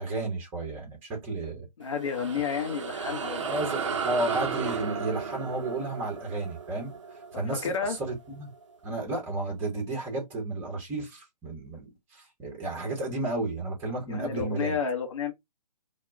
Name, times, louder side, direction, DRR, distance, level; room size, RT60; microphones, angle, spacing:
voice 1, 0.0-1.7 3.4-6.9 7.3-8.5 8.8-14.8, right 2 dB, 10° right, 0.7 m, -32 dB
voice 2, 1.8-3.5 7.6-8.0 14.1-15.3, left 6 dB, 45° left, 0.7 m, -30 dB
sound 1, 1.8-8.6, right 6 dB, 45° right, 0.4 m, -34 dB
2.1 x 2.1 x 3.4 m
figure-of-eight pair, 135°, 21 cm